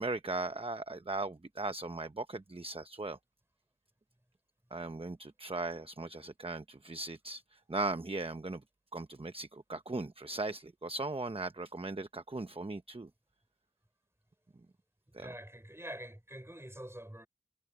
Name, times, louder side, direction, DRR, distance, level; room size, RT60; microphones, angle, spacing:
voice 1, 0.0-3.2 4.7-8.6 8.9-13.1 15.1-15.3, right 2 dB, 30° right, 0.9 m, -38 dB
voice 2, 15.2-17.3, right 1 dB, 15° right, 4.6 m, -46 dB
wide cardioid pair, 45°, 18 cm